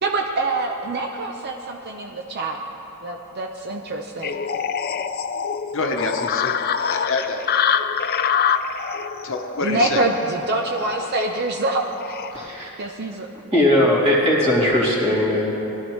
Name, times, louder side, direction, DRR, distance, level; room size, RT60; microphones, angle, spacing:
voice 1, 0.0-2.6 3.0-4.4 9.6-12.2 12.8-13.3, right 2 dB, 45° right, 2 dB, 0.7 m, -25 dB
sound 1, 4.2-12.5, left 7 dB, 45° left, 0.4 m, -25 dB
voice 2, 5.7-6.6 6.9-7.4 9.2-10.0, left 3 dB, 60° left, 3 dB, 0.9 m, -26 dB
voice 3, 12.3-12.7 13.5-15.4, left 1 dB, 25° right, -6 dB, 2.7 m, -18 dB
20.0 x 12.0 x 3.2 m, 3.0 s
head